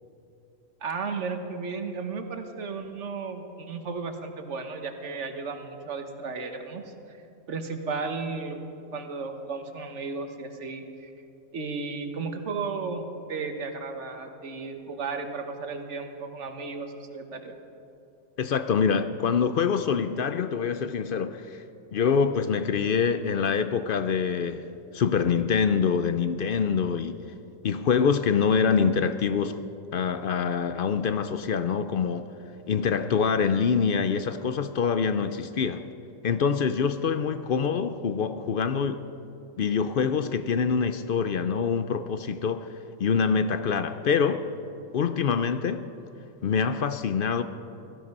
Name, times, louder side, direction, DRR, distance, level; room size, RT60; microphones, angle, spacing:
voice 1, 0.8-6.8 7.1-7.2 7.5-8.6 8.9-11.1 11.5-17.5, right 4 dB, 60° right, 1.5 m, -34 dB
voice 2, 18.4-21.6 21.9-24.7 24.9-27.2 27.6-29.6 29.9-32.3 32.7-35.9 36.2-39.0 39.6-44.5 44.9-45.9 46.4-47.4, left 6 dB, 60° left, 0.6 m, -25 dB
16.5 x 14.5 x 5.4 m
omnidirectional pair, 1.4 m